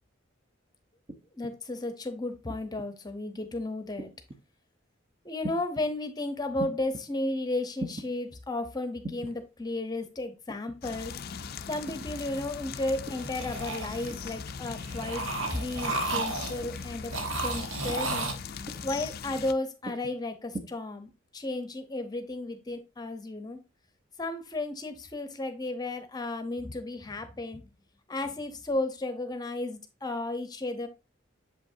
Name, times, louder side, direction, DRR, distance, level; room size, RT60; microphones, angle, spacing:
sound 1, 1.1-1.5 2.5-2.9 4.0-4.4 5.4-5.9 6.6-7.1 7.8-8.1 9.0-9.4 10.5-10.8 11.9-12.1 13.0-13.4 14.1-14.4 15.4-15.7 16.6-16.9 17.9-18.2 18.7-19.0 19.8-20.2 20.5-20.6, right 2 dB, 30° right, 0.8 m, -41 dB
voice 1, 1.3-4.1 5.2-11.1 11.7-17.1 17.4-18.3 18.8-23.6 24.2-27.6 28.1-30.9, left 2 dB, 20° left, 8 dB, 0.9 m, -34 dB
sound 2, 10.8-19.5, left 5 dB, 50° left, 0.4 m, -40 dB
sound 3, 13.2-14.4 14.7-16.7 17.1-18.3, right 2 dB, 90° right, 1.1 m, -33 dB
7.2 x 5.2 x 2.7 m, 0.26 s
head